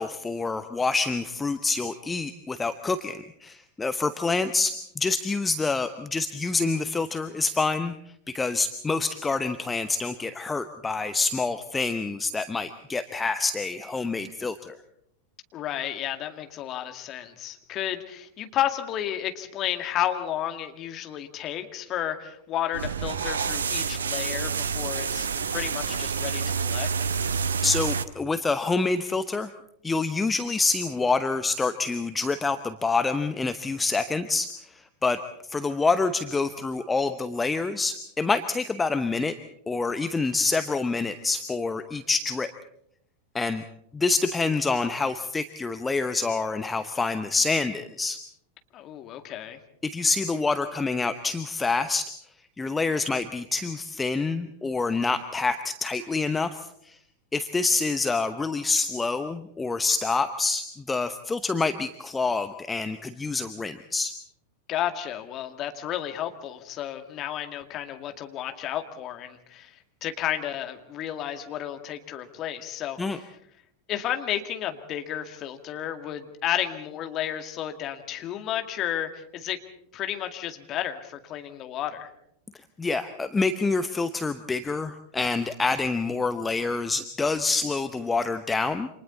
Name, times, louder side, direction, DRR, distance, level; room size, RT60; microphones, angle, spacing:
voice 1, 0.0-7.9 8.3-14.7 27.6-29.5 29.8-39.4 39.7-42.5 43.3-43.6 43.9-48.2 49.8-52.1 52.6-57.0 57.3-64.1 73.0-73.2 82.8-88.9, left 3 dB, 10° left, 10 dB, 0.9 m, -27 dB
voice 2, 15.5-26.9 48.7-49.6 64.7-73.3 73.9-79.6 79.9-82.1, left 11 dB, 35° left, 7 dB, 2.1 m, -32 dB
sound 1, 22.7-28.1, right 6 dB, 70° right, 0.9 m, -28 dB
29.0 x 26.5 x 4.2 m, 0.74 s
figure-of-eight pair, 90°, 0 cm